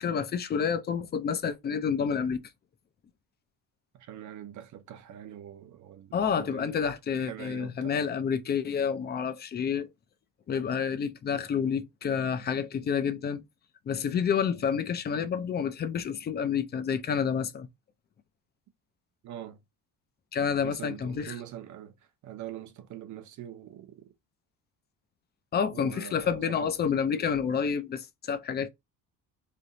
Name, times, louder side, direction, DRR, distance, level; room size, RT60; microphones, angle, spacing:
voice 1, 0.0-2.4 6.1-9.9 10.5-13.4 13.9-17.7 20.3-21.3 25.5-28.7, left 7 dB, 30° left, 0.5 m, -29 dB
voice 2, 3.9-6.9 7.1-8.0 11.3-11.4 19.2-19.6 20.6-22.0 22.2-24.0 25.7-27.4, right 11 dB, 60° right, 0.8 m, -44 dB
3.4 x 2.7 x 3.9 m
cardioid pair, 150°, 34 cm